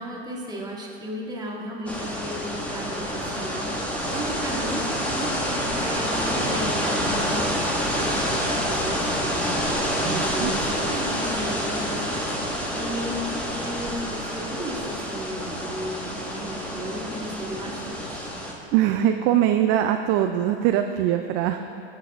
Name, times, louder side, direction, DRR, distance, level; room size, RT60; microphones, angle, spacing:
voice 1, 0.0-4.9 5.1-12.0 12.4-18.2, equal, 10° right, -3 dB, 1.7 m, -35 dB
sound 1, 1.9-18.5, equal, 5° left, 1.3 m, -27 dB
voice 2, 9.9-10.5 18.7-21.7, right 11 dB, 35° right, 6 dB, 0.4 m, -22 dB
16.5 x 7.5 x 3.5 m, 3.0 s
hypercardioid pair, 115°, 33 cm